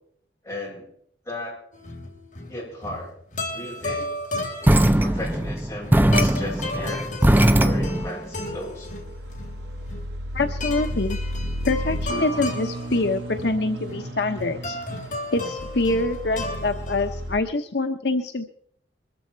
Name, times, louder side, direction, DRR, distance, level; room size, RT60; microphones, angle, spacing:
voice 1, 0.4-0.9 1.2-1.6 2.5-3.1 3.5-4.1 4.7-7.2 7.5-8.9, left 1 dB, 15° left, -4 dB, 8.0 m, -35 dB
sound 1, 1.7-17.3, left 2 dB, 45° left, 3.3 m, -34 dB
sound 2, 4.6-8.1, right 1 dB, 10° right, 0.7 m, -19 dB
sound 3, 8.0-17.4, equal, 65° right, 1.2 m, -34 dB
voice 2, 10.3-11.2 11.6-14.8 15.3-18.4, left 2 dB, 60° left, 6 dB, 0.9 m, -25 dB
22.5 x 14.0 x 4.6 m, 0.65 s
head